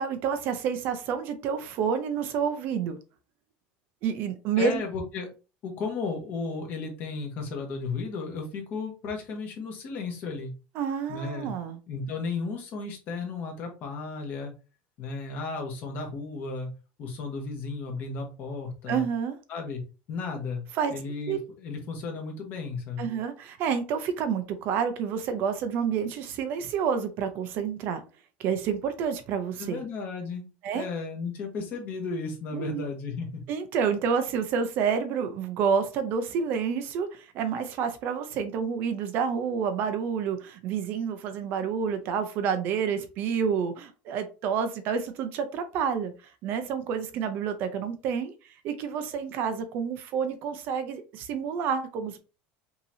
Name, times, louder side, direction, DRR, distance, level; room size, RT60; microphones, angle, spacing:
voice 1, 0.0-3.0 4.0-4.8 10.7-11.8 18.9-19.4 20.8-20.9 21.3-21.4 23.0-28.0 28.4-29.8 30.6-30.8 32.5-32.9 33.5-52.2, right 6 dB, 45° right, 9 dB, 0.6 m, -29 dB
voice 2, 4.6-5.3 5.6-10.5 11.1-11.5 11.9-14.5 15.0-16.7 17.0-19.0 19.5-19.8 20.1-20.6 20.9-23.1 29.6-30.4 30.7-33.4, left 4 dB, 40° left, 2 dB, 1.4 m, -34 dB
5.5 x 2.9 x 2.7 m, 0.33 s
cardioid pair, 170°, 5 cm